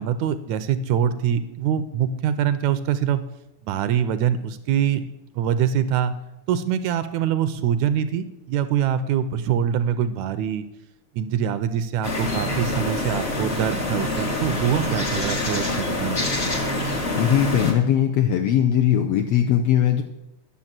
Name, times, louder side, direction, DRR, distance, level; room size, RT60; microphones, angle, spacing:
voice 1, 0.0-3.2 3.7-5.0 5.4-6.2 6.5-10.6 11.2-16.2, right 9 dB, 80° right, 11 dB, 1.8 m, -24 dB
sound 1, 12.0-17.7, left 2 dB, 40° left, 0.9 m, -26 dB
voice 2, 17.2-20.0, left 10 dB, 75° left, 4 dB, 1.4 m, -19 dB
10.5 x 6.9 x 7.4 m, 0.91 s
omnidirectional pair, 3.5 m